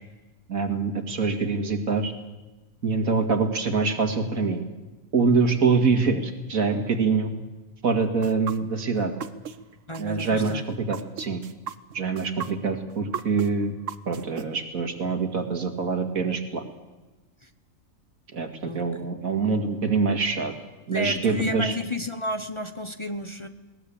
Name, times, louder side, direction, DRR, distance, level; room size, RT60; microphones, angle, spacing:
voice 1, 0.5-2.1 2.8-4.6 5.1-7.3 7.8-9.1 10.0-11.4 11.9-13.7 14.1-16.6 18.3-20.5 20.9-21.8, right 4 dB, 90° right, 5 dB, 2.6 m, -25 dB
sound 1, 8.2-9.6 9.9-14.4, right 8 dB, 65° right, 1.3 m, -35 dB
voice 2, 9.9-10.6 17.4-17.5 18.6-18.8 20.9-23.5, left 1 dB, 25° left, 8 dB, 0.9 m, -31 dB
20.5 x 19.0 x 8.6 m, 1.1 s
omnidirectional pair, 1.4 m